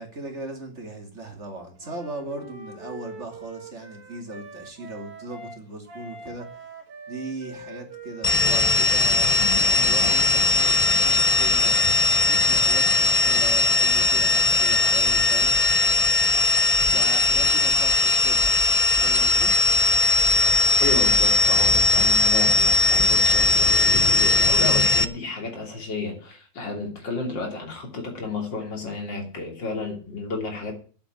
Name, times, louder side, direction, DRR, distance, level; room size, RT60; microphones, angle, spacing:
voice 1, 0.0-6.7 7.1-9.3 9.7-11.8 12.2-15.6 16.7-18.5 19.0-19.6, right 2 dB, 40° right, 3.0 m, -38 dB
Wind instrument woodwind instrument, 1.8-5.6 5.9-10.0, right 2 dB, 55° right, 2.3 m, -43 dB
sound 1, 8.2-25.0, left 2 dB, 60° left, 0.3 m, -19 dB
voice 2, 20.8-30.7, left 3 dB, 80° left, 3.7 m, -31 dB
10.5 x 7.9 x 9.3 m
omnidirectional pair, 1.9 m